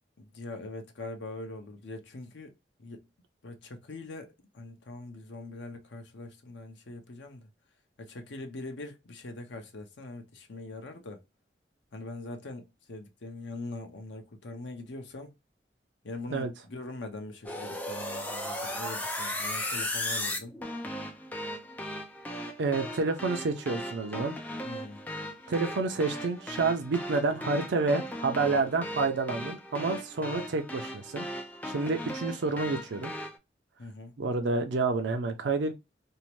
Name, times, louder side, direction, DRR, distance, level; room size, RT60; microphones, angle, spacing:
voice 1, 0.2-2.5 2.8-3.0 3.4-7.5 8.0-11.2 11.9-15.3 16.0-20.6 24.6-25.0 33.8-34.1, left 2 dB, 80° left, 0.7 m, -42 dB
sound 1, 17.4-33.4, left 1 dB, 10° left, 0.4 m, -37 dB
voice 2, 22.6-24.3 25.5-31.3 31.6-33.1 34.2-35.7, right 3 dB, 80° right, 0.4 m, -29 dB
2.7 x 2.1 x 2.9 m
head